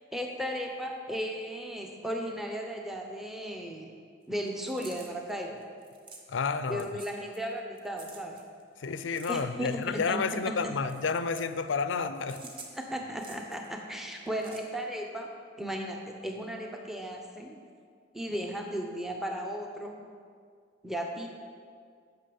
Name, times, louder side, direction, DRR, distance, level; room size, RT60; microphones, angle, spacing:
voice 1, 0.1-3.9 4.3-5.6 6.7-8.4 9.3-10.2 12.7-15.3 15.6-17.6 18.1-20.0 20.8-21.3, equal, ahead, 1 dB, 0.7 m, -35 dB
sound 1, 4.5-6.5 6.8-7.5 7.8-10.4 10.8-11.6 12.2-13.7 14.2-14.6, right 3 dB, 25° right, 1.0 m, -49 dB
voice 2, 6.3-6.9 8.8-12.4, left 5 dB, 90° left, 12 dB, 0.5 m, -30 dB
8.9 x 6.1 x 7.0 m, 2.1 s
head